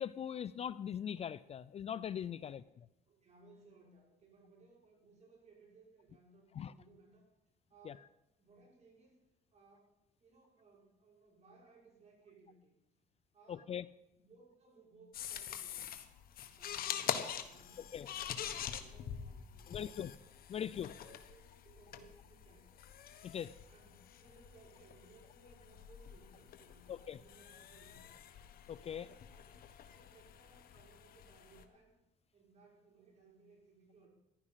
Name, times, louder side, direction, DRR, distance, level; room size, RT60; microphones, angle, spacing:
voice 1, 0.0-2.6 6.6-6.7 7.9-8.0 13.5-13.8 17.9-18.1 19.7-20.1 20.5-20.9 23.2-23.5 26.9-27.2 28.7-29.1, left 9 dB, 40° left, 17 dB, 0.4 m, -40 dB
voice 2, 3.1-7.3 7.7-8.1 8.4-9.2 9.5-12.7 13.3-13.8 14.1-15.9 16.4-20.0 20.4-20.6 20.9-22.8 23.7-28.1 28.8-31.9 32.3-34.1, right 3 dB, 40° right, -1 dB, 6.2 m, -63 dB
sound 1, 15.1-31.6, left 9 dB, 60° left, 1.4 m, -45 dB
15.0 x 11.5 x 5.7 m, 0.90 s
cardioid pair, 110°, 17 cm